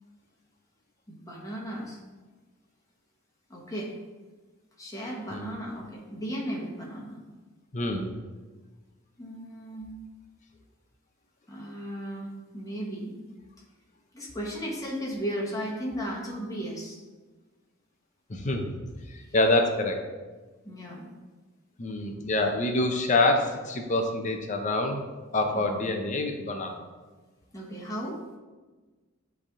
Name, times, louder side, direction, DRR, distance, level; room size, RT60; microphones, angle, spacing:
voice 1, 1.1-2.0 3.5-3.9 4.8-7.2 9.2-9.9 11.5-13.1 14.1-17.0 20.6-21.1 25.5-25.9 27.5-28.2, equal, 15° left, -3 dB, 1.3 m, -35 dB
voice 2, 7.7-8.1 18.3-18.8 19.3-20.0 21.8-25.1 25.3-26.9, left 2 dB, 35° left, 4 dB, 0.6 m, -26 dB
9.7 x 3.5 x 3.7 m, 1.3 s
head